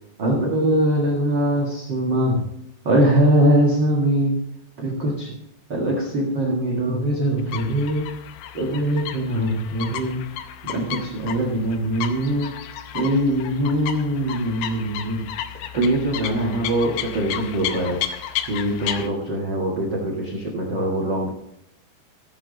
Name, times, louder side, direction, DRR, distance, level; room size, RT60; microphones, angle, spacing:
voice 1, 0.2-2.4 2.8-4.4 4.8-5.3 5.7-8.1 8.5-10.2 10.6-12.5 12.9-15.2 15.7-18.0 18.5-21.3, right 1 dB, 50° right, -1 dB, 1.4 m, -22 dB
sound 1, 7.4-19.1, left 11 dB, 90° left, 3.0 m, -33 dB
13.5 x 8.9 x 4.0 m, 0.79 s
omnidirectional pair, 4.8 m